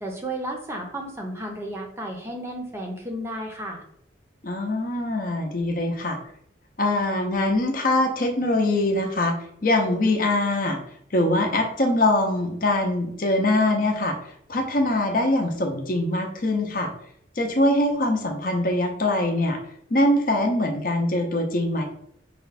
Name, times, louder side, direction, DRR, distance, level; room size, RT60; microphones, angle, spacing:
voice 1, 0.0-3.8, right 1 dB, 15° right, 1 dB, 0.6 m, -33 dB
voice 2, 4.4-6.2 6.8-9.4 9.6-10.8 11.1-14.2 14.5-16.9 17.4-19.6 19.9-21.8, left 1 dB, 45° left, 3 dB, 0.7 m, -23 dB
5.1 x 2.2 x 4.1 m, 0.72 s
head